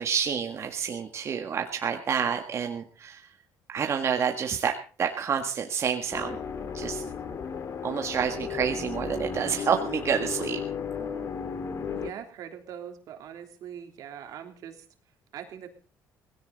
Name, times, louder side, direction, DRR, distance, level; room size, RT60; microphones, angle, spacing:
voice 1, 0.0-3.3 3.7-6.4 6.7-7.0 7.8-10.6, right 7 dB, 45° right, 3 dB, 1.8 m, -28 dB
sound 1, 6.1-12.1, left 6 dB, 50° left, 2.3 m, -34 dB
voice 2, 11.9-14.8 15.3-15.7, right 9 dB, 70° right, 5 dB, 3.3 m, -42 dB
18.0 x 16.5 x 4.1 m, 0.40 s
cardioid pair, 95°, 6 cm